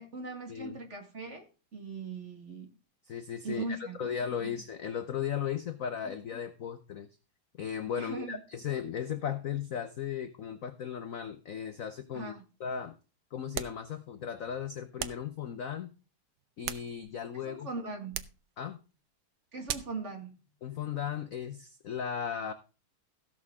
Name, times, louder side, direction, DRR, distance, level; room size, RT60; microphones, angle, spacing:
voice 1, 0.0-1.5 1.7-2.7 3.4-4.1 4.4-4.6 8.0-8.4 12.1-12.4 17.3-18.3 19.5-20.4, right 3 dB, 35° right, 4 dB, 2.1 m, -40 dB
voice 2, 3.0-7.1 7.6-13.0 13.3-15.9 16.6-17.7 18.6-18.8 20.6-22.5, left 8 dB, 60° left, 10 dB, 0.9 m, -36 dB
sound 1, 13.5-13.9 15.0-15.3 16.4-17.3 18.1-18.4 19.7-20.0, right 10 dB, 65° right, 1.0 m, -38 dB
16.5 x 6.3 x 3.7 m, 0.33 s
omnidirectional pair, 2.3 m